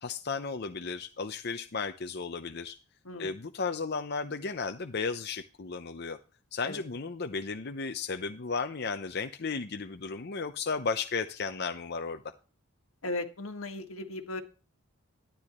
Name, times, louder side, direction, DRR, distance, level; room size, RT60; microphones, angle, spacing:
voice 1, 0.0-2.8 3.2-6.2 6.5-12.2, left 4 dB, 50° left, 7 dB, 0.7 m, -34 dB
voice 2, 13.0-14.4, left 2 dB, 90° left, 6 dB, 1.7 m, -37 dB
12.0 x 10.0 x 3.1 m, 0.34 s
head